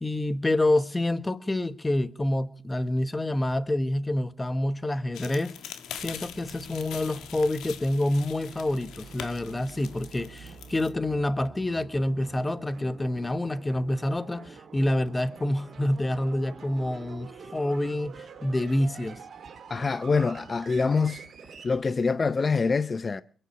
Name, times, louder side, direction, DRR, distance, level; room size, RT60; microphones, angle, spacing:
voice 1, 0.0-5.5 6.0-19.2, left 1 dB, 15° left, 1.3 m, -27 dB
sound 1, 5.1-10.9, left 9 dB, 80° left, 1.8 m, -43 dB
sound 2, 5.9-21.8, right 5 dB, 55° right, 2.8 m, -47 dB
voice 2, 19.7-21.2 21.6-23.2, left 4 dB, 30° left, 0.7 m, -25 dB
22.0 x 10.0 x 6.3 m
cardioid pair, 90°, 0 cm